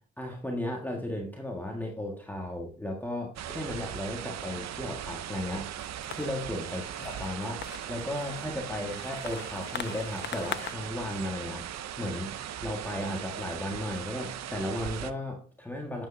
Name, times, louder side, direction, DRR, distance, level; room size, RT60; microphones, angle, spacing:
voice 1, 0.2-5.7 6.1-12.4 12.6-16.1, left 1 dB, 5° left, 0 dB, 1.6 m, -35 dB
sound 1, 3.4-15.1, right 10 dB, 60° right, 0.7 m, -39 dB
sound 2, 5.7-10.7, left 10 dB, 35° left, 0.4 m, -42 dB
9.1 x 8.5 x 2.7 m, 0.41 s
cardioid pair, 90°, 30 cm